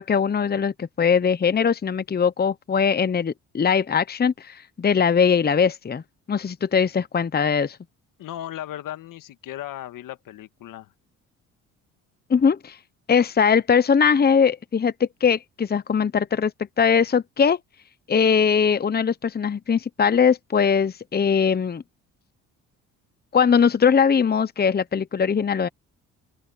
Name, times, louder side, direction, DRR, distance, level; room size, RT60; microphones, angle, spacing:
voice 1, 0.0-6.0 6.3-7.8 12.3-12.8 13.1-16.5 16.8-17.6 18.1-21.8 23.3-25.7, left 6 dB, 30° left, 0.9 m, -21 dB
voice 2, 8.2-10.9, left 12 dB, 70° left, 1.7 m, -36 dB
open air
supercardioid pair, 65°, 34 cm